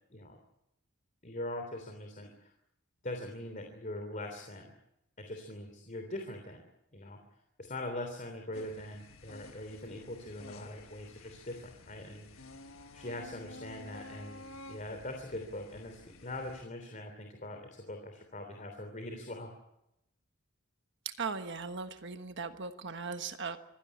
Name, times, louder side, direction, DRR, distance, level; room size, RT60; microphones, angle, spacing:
voice 1, 1.2-2.5 3.0-4.7 5.2-6.6 6.9-7.2 7.6-12.5 12.9-19.5, left 1 dB, 35° left, 4 dB, 3.2 m, -42 dB
sound 1, 8.5-16.6, left 2 dB, 70° left, 1.5 m, -52 dB
voice 2, 21.0-23.6, right 5 dB, 55° right, 8 dB, 1.3 m, -38 dB
25.5 x 16.5 x 9.7 m, 0.84 s
head